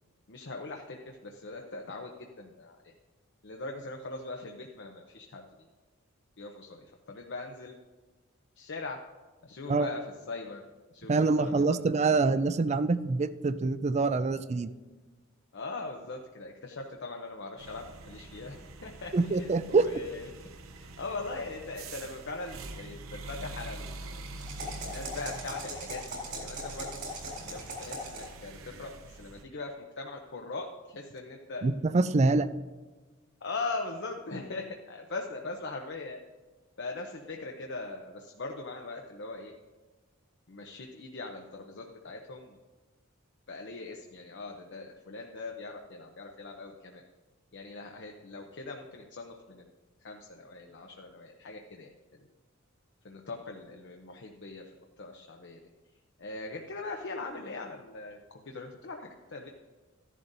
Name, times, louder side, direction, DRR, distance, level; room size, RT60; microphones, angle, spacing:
voice 1, 0.3-2.9 3.4-5.7 6.4-7.7 8.6-9.0 9.4-10.0 10.3-10.6 10.9-11.1 11.4-11.8 12.1-12.2 15.5-20.3 20.8-24.2 24.6-27.0 27.4-31.6 33.4-36.2 36.8-39.5 40.5-42.6 43.5-47.0 47.5-49.7 50.0-52.3 53.0-55.6 56.2-59.5, left 3 dB, 60° left, 2 dB, 0.7 m, -41 dB
voice 2, 11.1-14.7 19.1-19.9 31.6-32.5, right 3 dB, 35° right, 14 dB, 0.4 m, -25 dB
sound 1, 17.6-29.4, right 2 dB, 80° right, 0.8 m, -45 dB
sound 2, 24.4-28.4, right 1 dB, 55° right, 3.4 m, -40 dB
14.0 x 11.0 x 2.7 m, 1.3 s
head